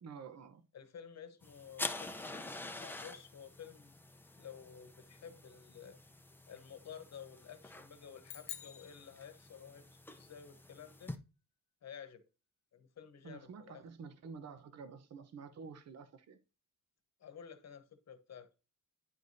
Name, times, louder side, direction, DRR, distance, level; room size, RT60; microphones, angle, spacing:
voice 1, 0.0-0.6 13.2-16.4, right 5 dB, 55° right, 0.9 m, -50 dB
voice 2, 0.7-4.0 4.4-6.0 6.5-11.1 11.8-12.2 12.7-13.8 17.2-18.5, left 7 dB, 55° left, 1.1 m, -52 dB
sound 1, 1.4-11.1, left 2 dB, 5° left, 0.6 m, -47 dB
sound 2, 8.2-9.9, left 11 dB, 75° left, 0.9 m, -49 dB
10.0 x 4.7 x 2.7 m
wide cardioid pair, 140°, 32 cm